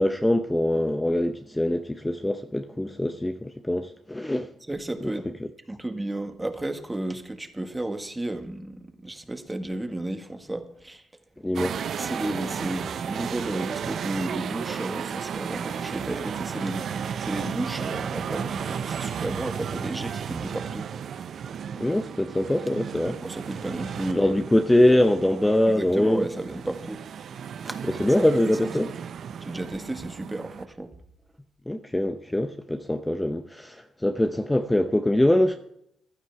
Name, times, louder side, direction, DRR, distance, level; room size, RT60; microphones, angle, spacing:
voice 1, 0.0-4.5 5.0-5.1 11.4-11.8 21.8-23.2 24.2-26.3 27.9-28.9 31.7-35.6, left 1 dB, 10° left, 0.8 m, -23 dB
voice 2, 4.7-5.3 5.7-11.0 12.0-20.9 23.0-24.4 25.7-27.0 27.6-27.8 28.2-28.3 28.6-28.7 29.4-30.9, right 1 dB, 15° right, 1.7 m, -33 dB
sound 1, 11.5-30.6, right 7 dB, 60° right, 0.8 m, -34 dB
15.5 x 11.5 x 4.7 m
cardioid pair, 90°, 0 cm